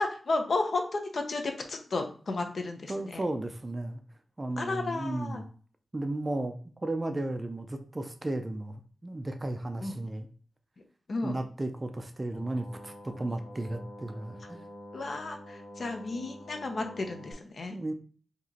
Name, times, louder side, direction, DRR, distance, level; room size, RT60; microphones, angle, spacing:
voice 1, 0.0-3.2 4.6-5.4 9.8-9.9 11.1-11.4 14.9-17.8, left 3 dB, 50° left, 4 dB, 0.6 m, -33 dB
voice 2, 2.9-4.0 4.4-5.4 5.9-10.3 11.2-14.7 17.7-17.9, right 2 dB, 20° right, 7 dB, 0.4 m, -34 dB
sound 1, 12.3-17.3, equal, 20° left, 1.1 m, -47 dB
4.7 x 2.9 x 2.8 m, 0.43 s
wide cardioid pair, 155°, 0 cm